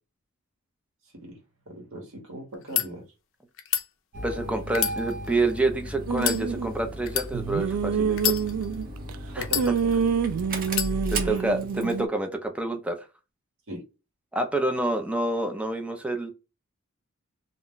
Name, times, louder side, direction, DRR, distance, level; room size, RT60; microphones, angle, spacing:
voice 1, 1.7-3.0 9.3-9.7 11.2-11.4 13.7-13.8, right 1 dB, 65° right, 1.2 m, -39 dB
sound 1, 2.5-2.9 3.6-3.9 4.7-5.6 6.2-6.4 7.1-7.3 8.1-8.8 9.4-10.1 10.7-10.9, left 11 dB, 60° left, 0.5 m, -28 dB
Engine starting, 4.1-12.0, right 1 dB, 45° right, 0.7 m, -36 dB
voice 2, 4.2-8.2 9.3-9.5 11.1-13.0 14.3-16.3, right 2 dB, 5° right, 0.4 m, -27 dB
sound 2, 6.1-6.7 7.3-9.1 9.5-12.1, right 6 dB, 80° right, 0.3 m, -27 dB
2.4 x 2.2 x 3.6 m
head